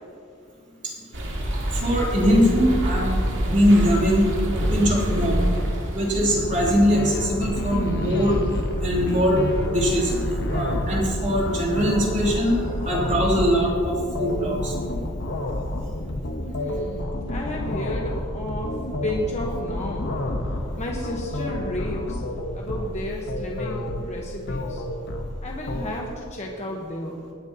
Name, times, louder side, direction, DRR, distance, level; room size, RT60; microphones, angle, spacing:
sound 1, 1.1-6.3, equal, 60° right, 2.0 m, -25 dB
voice 1, 1.7-3.1 3.4-4.3 4.7-5.4 5.9-8.4 8.8-14.7, equal, 35° right, -4 dB, 3.0 m, -22 dB
sound 2, 4.3-13.7, right 1 dB, 90° right, 2.0 m, -34 dB
sound 3, 6.3-25.9, left 1 dB, 55° left, 1.0 m, -29 dB
voice 2, 16.4-18.8 19.0-20.1 20.8-22.2 22.5-24.8 25.4-27.2, equal, 35° left, -1 dB, 1.1 m, -32 dB
19.0 x 10.5 x 2.9 m, 2.2 s
head